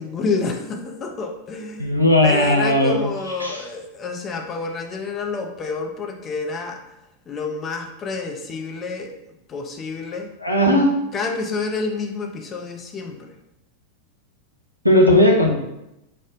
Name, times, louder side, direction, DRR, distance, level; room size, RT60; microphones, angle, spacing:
voice 1, 0.0-1.9 2.2-6.8 7.3-9.2 9.5-10.3 11.1-13.3, left 4 dB, 25° left, 3 dB, 0.5 m, -28 dB
voice 2, 1.8-3.0 3.4-3.6 10.4-10.9 14.8-15.5, left 1 dB, 90° right, 1 dB, 0.5 m, -16 dB
5.0 x 2.1 x 2.5 m, 0.89 s
figure-of-eight pair, 90°, 0 cm